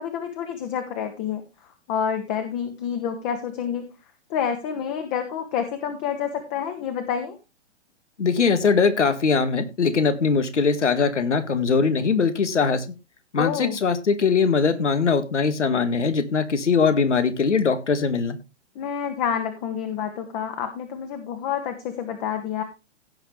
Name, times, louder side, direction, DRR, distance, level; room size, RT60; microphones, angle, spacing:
voice 1, 0.0-1.4 1.9-3.9 4.3-7.4 13.4-13.8 18.8-22.6, left 8 dB, 35° left, 6 dB, 1.8 m, -28 dB
voice 2, 8.2-12.9 13.3-18.4, left 5 dB, 75° left, 10 dB, 1.9 m, -21 dB
17.0 x 6.7 x 3.3 m, 0.27 s
figure-of-eight pair, 120°, 36 cm